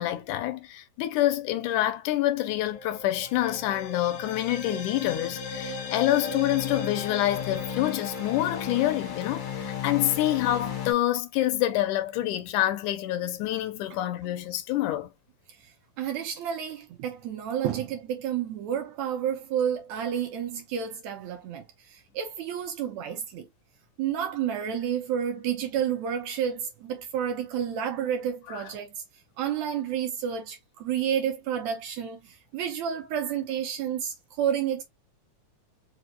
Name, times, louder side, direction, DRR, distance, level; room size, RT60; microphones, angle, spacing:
voice 1, 0.0-15.1 28.5-28.6, left 14 dB, 80° left, 2.0 m, -27 dB
sound 1, 2.2-10.9, left 6 dB, 60° left, 1.2 m, -35 dB
voice 2, 16.0-21.6 21.9-23.5 24.0-28.9 29.4-32.2 32.5-34.8, right 9 dB, 70° right, 1.9 m, -30 dB
5.2 x 2.3 x 2.8 m
omnidirectional pair, 3.6 m